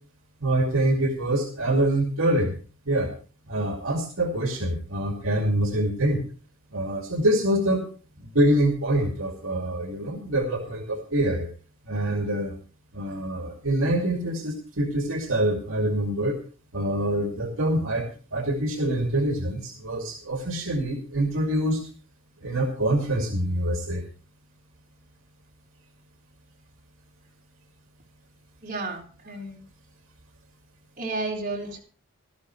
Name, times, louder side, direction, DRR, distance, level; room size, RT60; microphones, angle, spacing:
voice 1, 0.4-2.5 2.9-3.1 3.5-6.2 6.7-7.8 8.2-11.5 11.9-12.5 12.9-16.4 16.7-21.8 22.4-24.0, right 1 dB, 70° right, 3 dB, 2.6 m, -25 dB
voice 2, 28.6-29.6 31.0-31.8, right 2 dB, 40° right, -2 dB, 4.1 m, -32 dB
19.0 x 12.5 x 3.2 m, 0.38 s
head